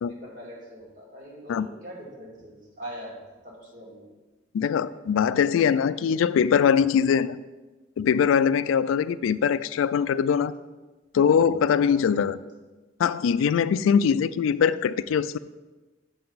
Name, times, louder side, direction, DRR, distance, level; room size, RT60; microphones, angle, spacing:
voice 1, 0.1-4.1 11.3-12.2 13.7-14.0, equal, 45° right, -4 dB, 2.3 m, -43 dB
voice 2, 4.5-7.4 8.0-10.5 11.1-12.4 13.0-15.4, left 7 dB, 90° left, 17 dB, 0.3 m, -22 dB
7.7 x 6.6 x 4.0 m, 1.2 s
head